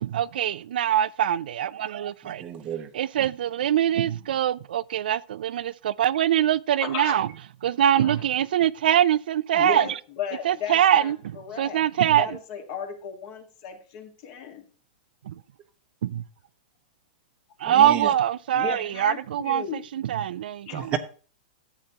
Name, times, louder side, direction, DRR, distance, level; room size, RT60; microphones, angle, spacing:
voice 1, 0.0-2.4 2.9-7.3 7.6-9.8 10.4-12.3 16.0-16.2 17.6-19.6 19.9-20.9, right 10 dB, 80° right, 0.4 m, -23 dB
voice 2, 2.2-2.9 17.7-18.1 20.7-21.0, right 10 dB, 25° right, 0.7 m, -31 dB
voice 3, 6.8-7.2 8.0-8.2 9.5-11.8 12.2-14.6 18.5-19.8 20.7-21.0, left 7 dB, 40° left, 1.7 m, -35 dB
13.0 x 8.0 x 2.9 m
supercardioid pair, 160°, 5 cm